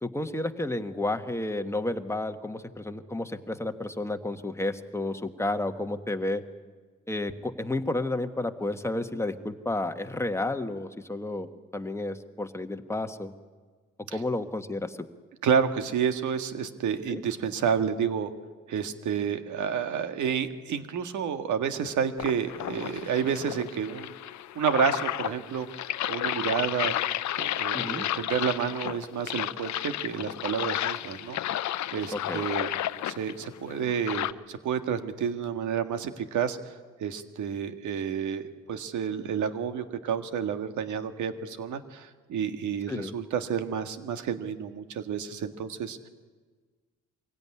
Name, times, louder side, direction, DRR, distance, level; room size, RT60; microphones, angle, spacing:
voice 1, 0.0-6.4 7.1-11.5 11.7-13.3 14.1-15.0 17.1-17.2 27.7-28.1 32.1-32.5 42.9-43.2, left 2 dB, 10° left, 6 dB, 1.5 m, -31 dB
voice 2, 15.4-18.3 18.7-24.1 24.6-25.7 26.1-26.9 27.4-31.7 31.9-32.7 33.0-36.7 37.0-38.4 38.7-46.1, right 7 dB, 75° right, 9 dB, 1.7 m, -30 dB
sound 1, 22.2-34.3, left 13 dB, 65° left, 0.7 m, -32 dB
24.0 x 17.0 x 9.7 m, 1.4 s
cardioid pair, 90°, 30 cm